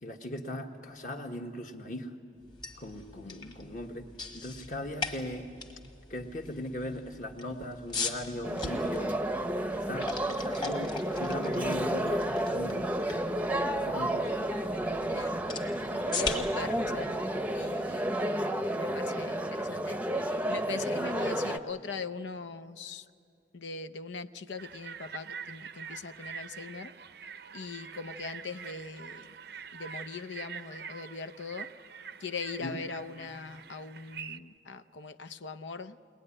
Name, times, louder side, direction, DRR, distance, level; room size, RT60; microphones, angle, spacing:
voice 1, 0.0-2.1 2.8-4.1 4.3-5.5 6.1-9.2 9.9-13.0 13.8-14.9 32.6-32.8, left 1 dB, 45° left, 4 dB, 1.5 m, -39 dB
sound 1, 2.4-18.3, left 4 dB, 25° left, 1.4 m, -41 dB
voice 2, 3.2-3.6 15.1-15.3 16.1-17.1 17.5-23.1 23.5-26.9 27.5-29.3 29.7-31.7 32.2-36.0, left 4 dB, 85° left, 12 dB, 0.7 m, -41 dB
sound 2, 8.4-21.6, right 1 dB, 10° right, 0.7 m, -31 dB
sound 3, 24.6-34.4, right 7 dB, 60° right, 0.6 m, -45 dB
22.0 x 19.5 x 9.9 m, 2.3 s
head